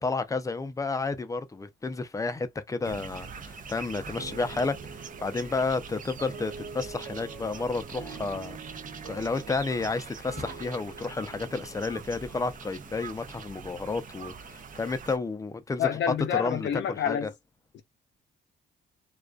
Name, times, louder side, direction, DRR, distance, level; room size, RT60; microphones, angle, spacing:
voice 1, 0.0-8.6 9.0-15.9 16.3-17.3, left 3 dB, 15° left, 0.5 m, -31 dB
sound 1, 2.8-15.2, right 5 dB, 40° right, 0.5 m, -43 dB
sound 2, 4.2-13.3, right 5 dB, 70° right, 0.9 m, -46 dB
voice 2, 15.8-17.3 17.7-17.8, left 9 dB, 65° left, 0.7 m, -28 dB
2.4 x 2.3 x 2.2 m
cardioid pair, 90°, 20 cm